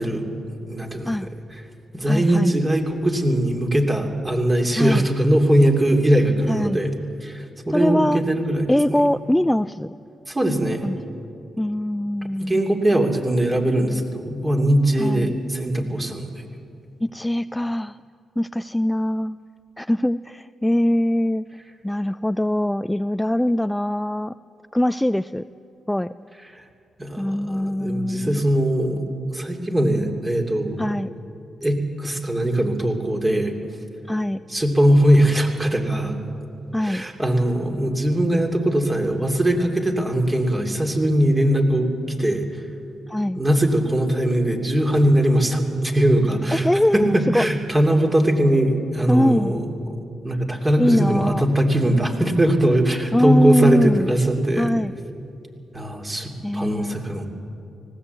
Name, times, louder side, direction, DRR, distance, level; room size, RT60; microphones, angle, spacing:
voice 1, 0.0-1.6 1.9-6.9 7.2-9.0 10.3-10.9 12.4-16.3 27.0-29.0 29.3-31.0 31.6-33.5 34.5-36.2 36.8-41.9 42.2-42.6 43.4-46.7 46.9-49.6 49.9-50.0 50.2-54.7 55.7-57.3, right 1 dB, 20° right, 3 dB, 2.8 m, -21 dB
voice 2, 2.1-2.6 4.8-5.0 6.5-6.8 7.7-8.2 8.7-9.9 10.8-11.0 11.6-12.7 15.0-15.3 17.0-18.0 18.4-19.4 19.8-21.5 21.8-24.3 24.7-25.5 25.9-26.1 27.2-28.5 30.8-31.1 34.1-34.4 36.7-37.0 43.1-43.4 46.5-47.4 49.1-49.5 50.8-51.4 53.1-54.1 54.6-55.0 56.4-57.0, left 1 dB, 5° left, 13 dB, 0.4 m, -22 dB
19.0 x 16.5 x 8.2 m, 2.6 s
cardioid pair, 65°, 0 cm